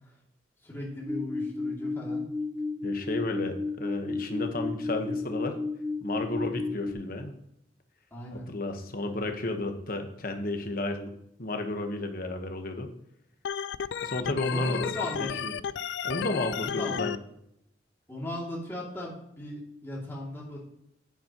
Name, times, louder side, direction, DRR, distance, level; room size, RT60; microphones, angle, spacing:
voice 1, 0.6-2.3 8.1-8.5 14.5-15.6 16.6-17.1 18.1-20.6, left 1 dB, 15° left, -4 dB, 2.6 m, -38 dB
sound 1, 1.1-6.9, left 3 dB, 5° right, 0.7 m, -33 dB
voice 2, 2.8-5.6 6.0-7.3 8.3-11.1 11.4-12.9 14.0-14.9 15.2-15.5 16.0-17.1, left 2 dB, 55° left, 5 dB, 1.2 m, -32 dB
Organ, 13.4-17.2, left 8 dB, 75° left, 0.4 m, -33 dB
10.5 x 9.3 x 3.0 m, 0.77 s
head